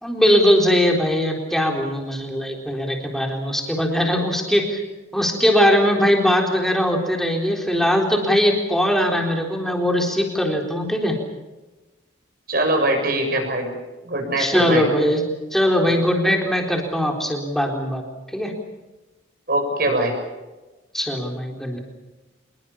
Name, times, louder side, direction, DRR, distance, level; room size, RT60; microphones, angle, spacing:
voice 1, 0.0-4.8 5.1-11.2 14.4-15.2 15.5-18.0 18.3-18.5 20.9-21.8, equal, ahead, 2 dB, 3.9 m, -20 dB
voice 2, 12.5-13.7 14.0-14.9 15.8-16.0 19.5-20.2, right 1 dB, 45° right, 3 dB, 7.0 m, -22 dB
26.0 x 22.0 x 7.2 m, 1.1 s
head